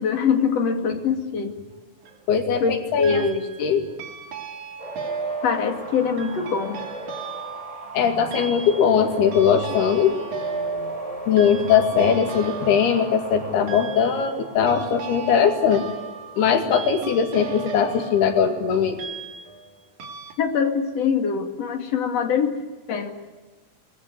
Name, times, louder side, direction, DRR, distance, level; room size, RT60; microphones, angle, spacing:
voice 1, 0.0-1.5 2.6-3.5 5.4-6.8 20.4-22.6 22.9-23.1, left 6 dB, 45° left, 5 dB, 3.1 m, -23 dB
sound 1, 1.7-2.3 3.0-3.7 4.0-19.7 20.0-20.3, right 5 dB, 55° right, 3.8 m, -35 dB
voice 2, 2.3-3.2 3.6-3.8 7.9-10.1 11.3-15.8 16.4-19.0, left 7 dB, 80° left, 6 dB, 4.3 m, -20 dB
sound 2, 4.8-17.2 21.0-21.2, right 1 dB, 10° right, 3.7 m, -39 dB
26.0 x 20.5 x 9.6 m, 1.2 s
omnidirectional pair, 4.5 m